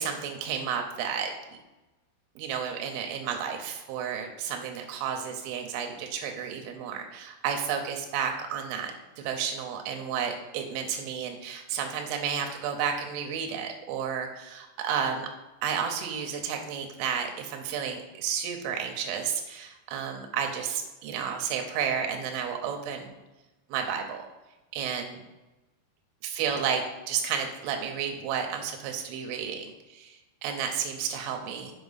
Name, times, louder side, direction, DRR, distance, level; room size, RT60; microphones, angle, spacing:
voice 1, 0.0-1.3 2.4-15.3 15.6-23.1 23.7-24.2 24.7-25.2 26.2-31.7, right 7 dB, 85° right, 4 dB, 3.1 m, -32 dB
7.1 x 5.4 x 4.0 m, 1.1 s
omnidirectional pair, 5.3 m